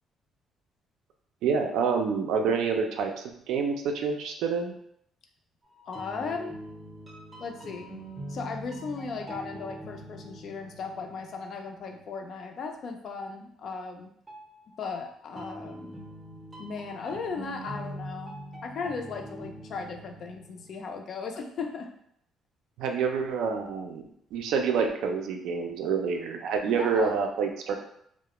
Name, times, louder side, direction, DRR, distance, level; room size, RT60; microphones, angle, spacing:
voice 1, 1.4-4.7 22.8-24.0 24.3-27.8, right 5 dB, 80° right, 3 dB, 0.4 m, -27 dB
sound 1, 5.7-12.4 14.3-20.8, right 1 dB, 20° right, 0.5 m, -43 dB
voice 2, 5.9-6.5 7.4-7.9 8.3-14.1 14.8-16.0 16.6-18.3 18.6-21.9 26.6-27.2, left 4 dB, 55° left, 3 dB, 0.4 m, -36 dB
2.3 x 2.0 x 2.9 m, 0.71 s
cardioid pair, 130°, 0 cm